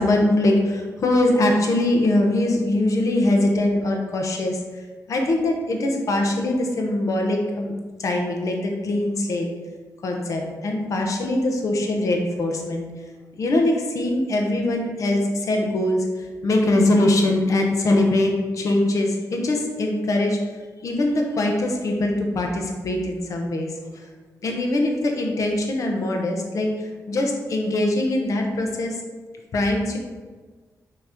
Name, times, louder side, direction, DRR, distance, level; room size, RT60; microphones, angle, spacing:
voice 1, 0.0-4.6 5.1-7.7 8.0-9.5 10.0-12.9 13.4-16.1 16.4-20.4 20.8-24.0 24.4-28.9 29.5-30.0, left 1 dB, 60° left, 2 dB, 0.9 m, -22 dB
6.1 x 3.1 x 5.0 m, 1.4 s
wide cardioid pair, 165°, 6 cm